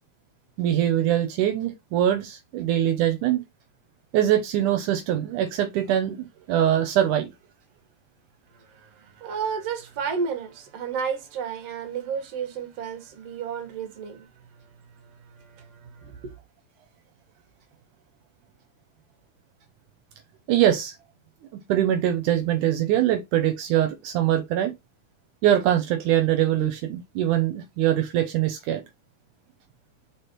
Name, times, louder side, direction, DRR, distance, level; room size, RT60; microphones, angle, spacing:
voice 1, 0.6-3.4 4.1-6.2 6.5-7.3 20.5-20.9 21.7-24.7 25.4-28.8, right 11 dB, 80° right, 2.4 m, -23 dB
voice 2, 8.5-14.3 15.0-16.3, right 6 dB, 55° right, 2.5 m, -32 dB
5.2 x 4.2 x 4.5 m
omnidirectional pair, 3.6 m